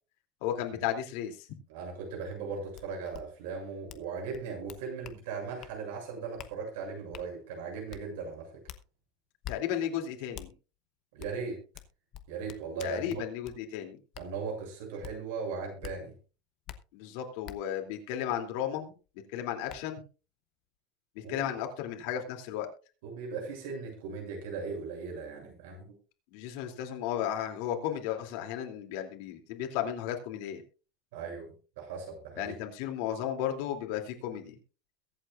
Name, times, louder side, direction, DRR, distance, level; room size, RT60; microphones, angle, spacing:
voice 1, 0.4-1.5 9.5-10.5 12.8-14.0 16.9-18.9 19.3-20.0 21.1-22.7 26.3-30.6 32.4-34.6, left 10 dB, 65° left, 4 dB, 2.8 m, -34 dB
voice 2, 1.7-8.6 11.1-11.6 12.3-13.2 14.2-16.1 21.2-21.5 23.0-25.9 31.1-32.5, right 5 dB, 85° right, 2 dB, 7.2 m, -38 dB
sound 1, 2.7-2.8 3.1-3.2 3.9-4.1 4.3-5.2 5.6-5.8 6.4-6.5 7.1-7.3 7.9-8.0 8.7-8.8 9.4-9.6 10.3-10.5 11.2-11.3 11.7-13.6 14.1-14.3 15.0-15.1 15.8-16.0 16.7-16.8 17.4-17.6 19.1-19.2 19.7-19.8, left 12 dB, 40° left, 1.0 m, -44 dB
22.5 x 8.3 x 2.5 m, 0.34 s
cardioid pair, 170°, 0 cm